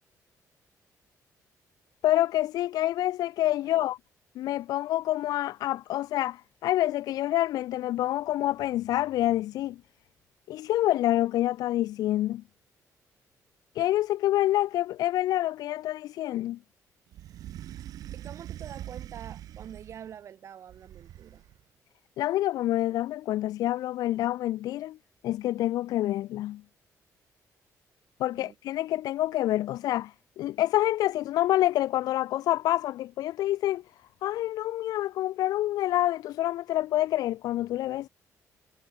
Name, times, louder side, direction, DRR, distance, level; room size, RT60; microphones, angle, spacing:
voice 1, 2.0-4.0 4.3-9.8 10.5-12.4 13.7-16.6 22.2-25.0 25.2-26.6 28.2-33.8 34.2-38.1, left 14 dB, 85° left, 1.1 m, -27 dB
sound 1, 17.1-20.1 20.7-21.6, right 12 dB, 75° right, 7.0 m, -43 dB
voice 2, 17.8-21.4 28.3-28.6, right 9 dB, 50° right, 6.5 m, -46 dB
cardioid pair, 160°, 6 cm